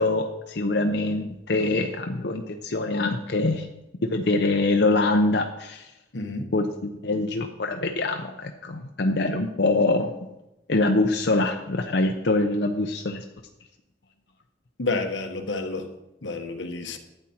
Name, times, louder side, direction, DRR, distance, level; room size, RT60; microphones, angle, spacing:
voice 1, 0.0-3.7 4.0-5.9 6.5-10.1 10.7-13.2, left 2 dB, 65° left, 0.7 m, -24 dB
voice 2, 6.1-6.5 14.8-15.9 16.2-17.0, left 3 dB, 90° left, 1.2 m, -29 dB
12.0 x 9.1 x 4.3 m
head